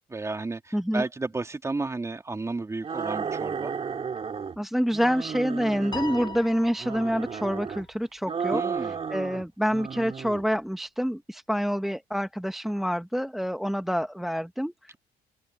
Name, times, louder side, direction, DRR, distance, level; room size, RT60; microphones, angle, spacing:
voice 1, 0.1-3.7 8.5-9.0, right 3 dB, 15° right, 2.6 m, -32 dB
voice 2, 0.7-1.0 4.6-14.9, equal, ahead, 1.1 m, -27 dB
sound 1, 2.8-4.6 4.9-6.4 6.8-7.8 8.2-9.4 9.7-10.4, right 6 dB, 35° right, 2.4 m, -33 dB
Piano, 5.9-7.5, left 3 dB, 25° left, 2.9 m, -38 dB
cardioid pair, 110°, 17 cm